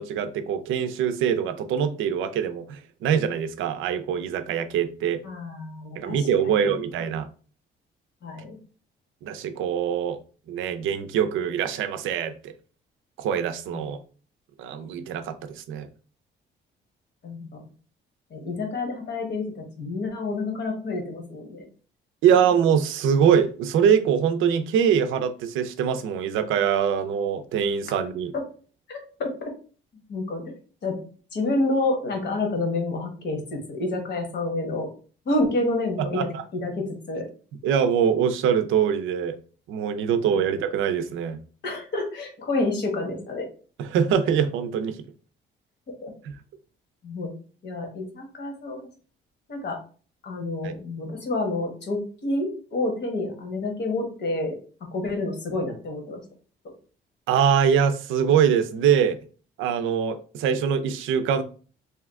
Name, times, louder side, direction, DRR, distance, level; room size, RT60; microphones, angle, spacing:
voice 1, 0.0-5.2 6.0-7.3 9.2-10.2 10.5-12.5 13.2-14.0 14.6-15.9 22.2-28.3 36.1-36.4 37.6-39.4 39.7-41.4 43.9-45.0 50.6-50.7 57.3-59.2 59.6-61.4, right 8 dB, 85° right, 0.4 m, -23 dB
voice 2, 5.2-6.8 8.2-8.6 13.7-13.9 17.2-17.6 18.3-21.7 28.9-29.5 30.1-31.0 31.3-34.9 35.2-37.3 40.3-40.4 41.6-43.5 45.9-46.1 47.0-47.3 47.6-48.8 49.5-49.8 50.2-54.6 54.9-56.2, left 2 dB, 60° left, 1.1 m, -29 dB
2.7 x 2.3 x 3.5 m
cardioid pair, 90°, 20 cm